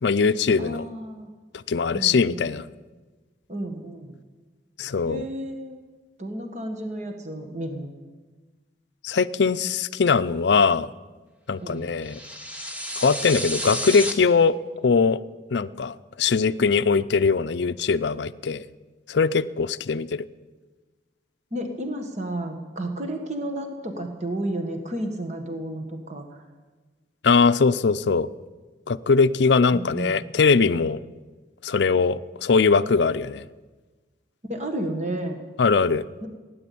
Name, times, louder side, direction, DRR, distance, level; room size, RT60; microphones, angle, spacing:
voice 1, 0.0-0.9 1.7-2.6 4.8-5.2 9.0-10.9 11.5-12.2 13.0-14.6 14.8-15.2 15.5-18.6 19.1-20.2 27.2-28.3 28.9-31.0 31.6-33.4 35.6-36.1, left 5 dB, 70° left, 14 dB, 0.5 m, -21 dB
voice 2, 0.6-1.3 1.9-2.5 3.5-4.2 5.1-5.8 6.2-7.9 11.6-11.9 21.5-26.4 29.7-30.2 34.5-35.4 36.2-36.3, right 1 dB, 40° right, 5 dB, 1.5 m, -32 dB
sound 1, 12.0-14.1, equal, 5° right, 1.1 m, -31 dB
16.5 x 10.0 x 8.5 m, 1.3 s
head